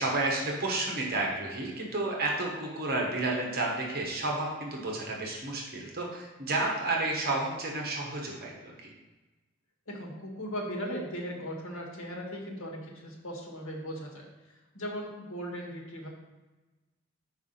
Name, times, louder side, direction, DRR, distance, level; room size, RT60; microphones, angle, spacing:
voice 1, 0.0-8.9, right 2 dB, 50° right, -1 dB, 1.2 m, -31 dB
voice 2, 9.9-16.1, equal, 85° left, 0 dB, 1.5 m, -38 dB
4.9 x 4.7 x 5.5 m, 1.2 s
head